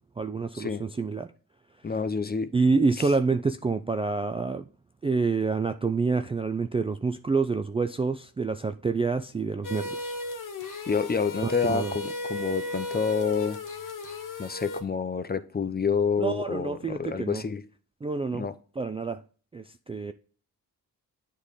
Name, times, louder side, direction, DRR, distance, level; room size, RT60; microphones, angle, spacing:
voice 1, 0.2-1.3 2.5-4.6 5.0-10.2 11.4-11.9 16.2-17.4 18.0-18.5 18.8-19.2 19.5-20.1, right 4 dB, 15° right, 0.3 m, -27 dB
voice 2, 1.8-2.5 3.0-3.1 10.9-13.6 14.4-17.7 18.3-18.5, left 5 dB, 25° left, 0.7 m, -28 dB
sound 1, 9.6-14.8, left 2 dB, 55° left, 1.2 m, -35 dB
8.1 x 3.3 x 3.6 m
cardioid pair, 50°, 37 cm